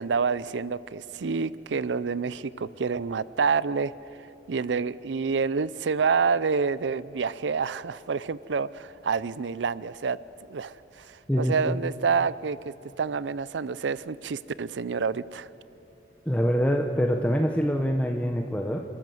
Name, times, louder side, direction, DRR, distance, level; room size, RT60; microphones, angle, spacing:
voice 1, 0.0-3.9 4.2-10.2 10.5-15.5, right 5 dB, 85° right, 18 dB, 0.5 m, -28 dB
voice 2, 11.3-11.8 16.3-18.8, equal, 10° left, 2 dB, 0.8 m, -25 dB
28.5 x 14.0 x 7.8 m, 2.7 s
head